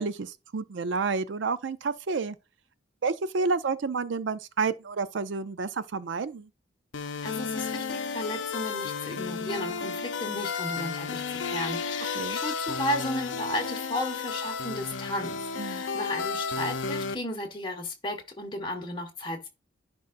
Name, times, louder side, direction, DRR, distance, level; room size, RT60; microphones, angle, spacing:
voice 1, 0.0-2.4 3.0-6.5 12.1-12.4 15.6-15.8, right 4 dB, 70° right, 0.5 m, -30 dB
sound 1, 6.9-17.1, left 5 dB, 80° left, 0.7 m, -33 dB
voice 2, 7.2-19.5, left 1 dB, 25° left, 1.5 m, -34 dB
10.5 x 3.8 x 2.5 m
head